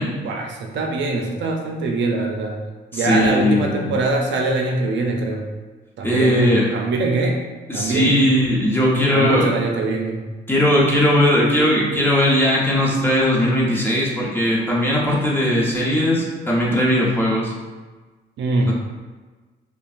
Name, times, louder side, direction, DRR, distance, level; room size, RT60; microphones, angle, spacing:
voice 1, 0.2-2.6 2.9-5.5 6.0-6.4 6.7-7.4 7.7-8.2 9.1-10.3 18.4-18.7, right 2 dB, 70° right, 1 dB, 0.6 m, -22 dB
voice 2, 2.9-3.9 6.0-6.7 7.7-9.5 10.5-17.5, left 1 dB, 10° left, -5 dB, 1.0 m, -18 dB
5.3 x 2.3 x 2.5 m, 1.3 s
cardioid pair, 90°, 20 cm